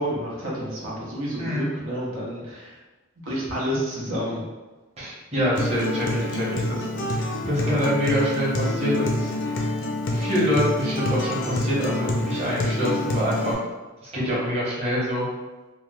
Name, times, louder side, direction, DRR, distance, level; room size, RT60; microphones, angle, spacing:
voice 1, 0.0-2.8 3.2-4.4, equal, 80° right, -6 dB, 0.9 m, -29 dB
voice 2, 5.0-9.3 10.1-13.6 14.1-15.2, equal, 30° right, -8 dB, 1.0 m, -25 dB
Acoustic guitar, 5.5-13.5, left 1 dB, 65° left, 0.5 m, -27 dB
2.8 x 2.1 x 3.3 m, 1.2 s
head